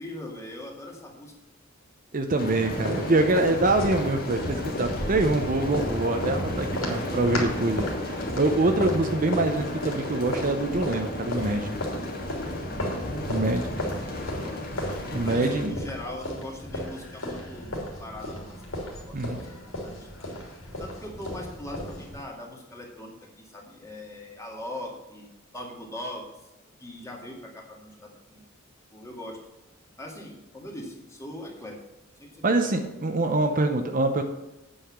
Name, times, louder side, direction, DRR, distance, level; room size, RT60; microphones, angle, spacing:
voice 1, 0.0-1.3 8.1-8.4 13.2-14.6 15.3-18.6 18.8-19.5 19.8-20.3 20.8-26.3 26.8-28.4 28.9-29.4 30.0-31.8 32.2-32.7, left 1 dB, 15° left, -1 dB, 1.9 m, -41 dB
voice 2, 2.1-11.8 13.3-13.7 15.1-15.8 19.1-19.4 32.4-34.2, right 2 dB, 40° right, 5 dB, 0.7 m, -25 dB
sound 1, 2.4-15.7, left 1 dB, 45° left, 1.9 m, -34 dB
sound 2, 2.5-22.2, equal, 75° left, 3.0 m, -34 dB
8.6 x 5.6 x 7.1 m, 0.99 s
head